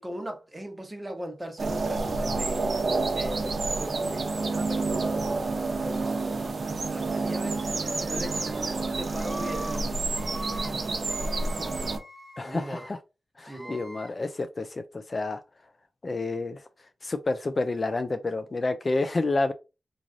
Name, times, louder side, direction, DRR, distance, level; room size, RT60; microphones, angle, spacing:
voice 1, 0.0-2.7 3.0-5.4 5.8-7.6 7.9-10.1 10.6-11.0 11.6-11.8 12.4-12.9 13.5-13.8, equal, 15° right, 1.0 m, -40 dB
sound 1, 1.6-12.0, right 3 dB, 55° right, 0.7 m, -29 dB
Screaming, 8.0-8.6 9.1-9.8 10.1-10.7 11.0-12.9 13.4-14.1, right 1 dB, ahead, 1.4 m, -42 dB
voice 2, 12.4-13.0 13.4-15.4 16.0-16.6 17.0-19.5, left 2 dB, 40° left, 0.4 m, -29 dB
3.1 x 2.6 x 3.7 m
wide cardioid pair, 90°, 0 cm